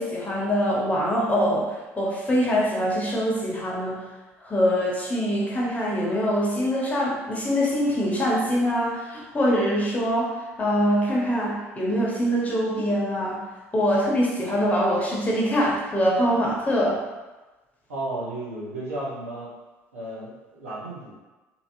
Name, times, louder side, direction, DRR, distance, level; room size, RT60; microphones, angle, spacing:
voice 1, 0.0-4.0 4.4-10.3 10.6-13.4 13.7-17.0, equal, 20° left, -4 dB, 1.0 m, -24 dB
voice 2, 17.9-19.5 19.9-21.1, right 1 dB, 85° right, -7 dB, 0.9 m, -33 dB
2.8 x 2.7 x 2.7 m, 1.2 s
figure-of-eight pair, 60°, 8 cm